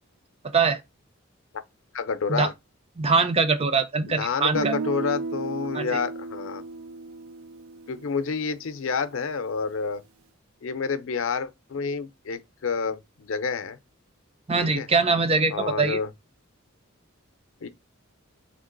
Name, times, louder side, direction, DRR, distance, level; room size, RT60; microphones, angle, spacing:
voice 1, 1.9-2.5 4.1-6.6 7.9-10.0 10.6-13.8 14.6-14.9 15.5-16.1 17.6-17.7, left 5 dB, 65° left, 0.5 m, -29 dB
voice 2, 3.0-4.7 5.7-5.9 14.5-16.0, right 4 dB, 30° right, 0.5 m, -22 dB
Guitar, 4.5-8.5, right 3 dB, 85° right, 0.5 m, -34 dB
3.7 x 2.9 x 3.8 m
head